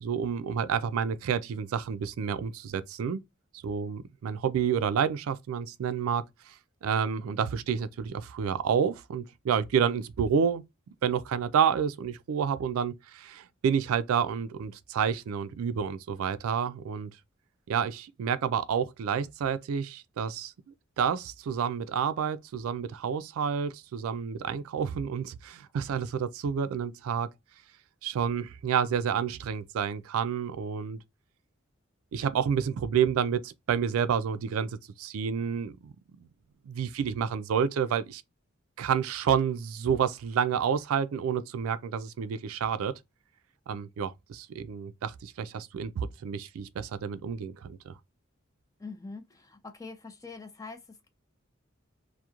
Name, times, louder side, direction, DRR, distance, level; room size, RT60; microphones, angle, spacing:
voice 1, 0.0-3.2 3.6-6.5 6.8-10.6 11.0-17.1 17.7-20.5 21.0-27.3 28.0-31.0 32.1-35.9 36.7-38.2 38.8-42.9 43.7-48.0, right 7 dB, 90° right, 0.3 m, -29 dB
voice 2, 48.8-51.1, left 4 dB, 15° left, 0.4 m, -44 dB
2.9 x 2.1 x 2.3 m
head